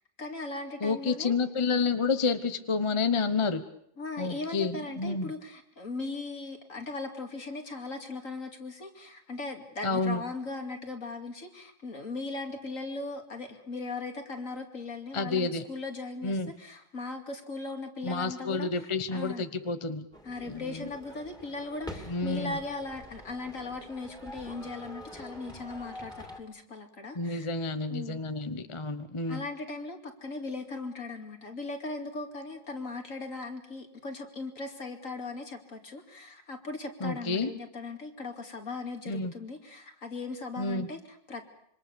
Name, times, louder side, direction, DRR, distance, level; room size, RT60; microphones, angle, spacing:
voice 1, 0.2-1.3 4.0-19.4 20.2-27.5 27.9-28.2 29.3-41.4, left 3 dB, 45° left, 4 dB, 2.9 m, -38 dB
voice 2, 0.8-3.6 4.2-5.3 9.8-10.2 15.1-15.7 16.2-16.5 18.0-20.1 20.5-20.9 22.1-22.6 27.1-29.4 37.0-37.5 39.1-39.3 40.6-40.9, left 4 dB, 25° left, 10 dB, 0.8 m, -30 dB
sound 1, 20.1-26.4, left 1 dB, ahead, 2.7 m, -46 dB
26.5 x 24.5 x 7.0 m, 0.71 s
omnidirectional pair, 1.9 m